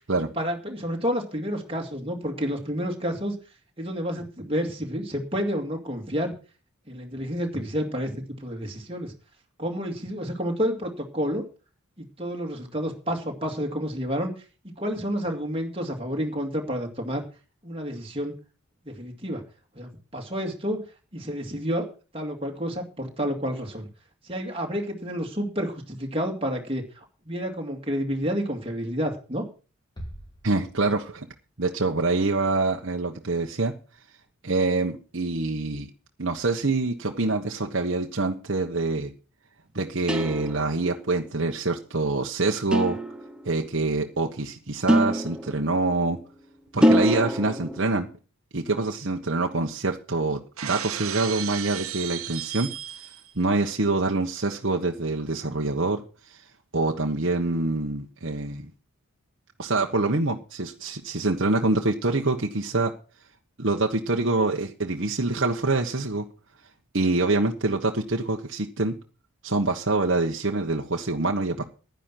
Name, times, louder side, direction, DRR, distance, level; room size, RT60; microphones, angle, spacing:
voice 1, 0.0-3.3 3.8-6.3 6.9-9.1 9.6-11.4 12.0-14.3 14.8-17.2 17.6-18.3 18.9-19.4 19.7-20.9 21.1-21.9 22.1-23.9 24.2-29.5, equal, 25° right, 1 dB, 2.3 m, -30 dB
sound 1, 30.0-31.6, equal, 20° left, 2.8 m, -43 dB
voice 2, 30.4-31.3 31.6-33.7 34.4-35.9 36.2-39.1 39.7-43.0 43.4-46.2 46.7-48.1 48.5-52.7 53.3-56.0 56.7-58.7 59.6-62.9 63.6-66.2 66.9-68.9 69.4-71.6, right 3 dB, 55° right, 1 dB, 1.3 m, -25 dB
sound 2, 40.1-40.9 42.7-43.6 44.9-45.9 46.8-47.8, equal, 5° right, 0.8 m, -24 dB
Shatter, 50.6-53.3, right 11 dB, 75° right, 1.3 m, -34 dB
10.5 x 10.0 x 5.9 m, 0.36 s
head